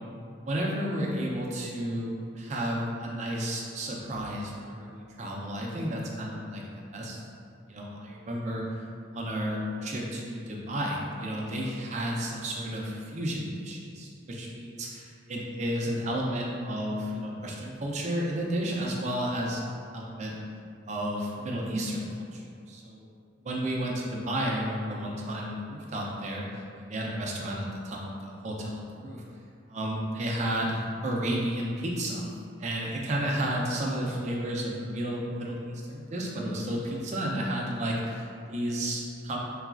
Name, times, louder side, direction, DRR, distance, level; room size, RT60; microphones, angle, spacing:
voice 1, 0.4-6.6 6.9-7.2 7.7-8.6 9.1-20.3 20.9-22.1 22.3-22.4 22.7-23.0 23.4-26.6 26.9-29.2 29.7-32.3 32.6-39.4, right 1 dB, 35° right, -2 dB, 0.4 m, -32 dB
3.9 x 2.3 x 2.3 m, 2.4 s
head